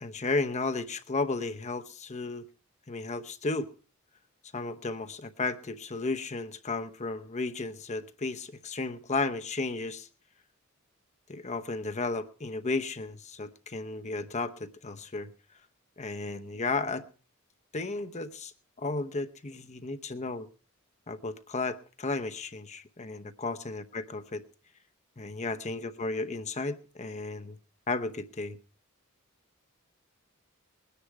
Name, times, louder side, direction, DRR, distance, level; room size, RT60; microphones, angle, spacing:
voice 1, 0.0-2.5 2.9-3.7 4.5-10.1 11.3-15.3 16.0-17.0 17.7-18.5 18.8-20.5 21.1-24.4 25.2-27.6 27.9-28.6, left 3 dB, 35° left, 0.9 m, -34 dB
20.5 x 10.0 x 4.7 m
head